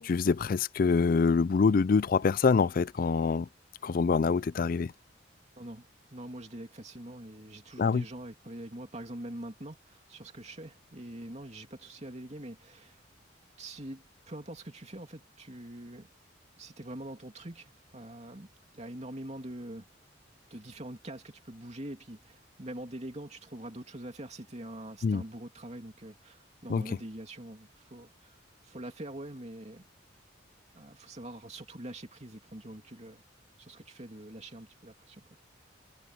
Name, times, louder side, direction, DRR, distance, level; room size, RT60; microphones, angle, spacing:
voice 1, 0.0-3.5 3.8-4.9 7.8-8.0 25.0-25.2 26.7-26.9, left 4 dB, 45° left, 0.4 m, -25 dB
voice 2, 6.1-13.0 13.6-16.1 16.6-18.5 18.7-19.9 20.5-29.9 30.7-33.2 33.6-35.3, right 1 dB, 35° right, 2.8 m, -44 dB
head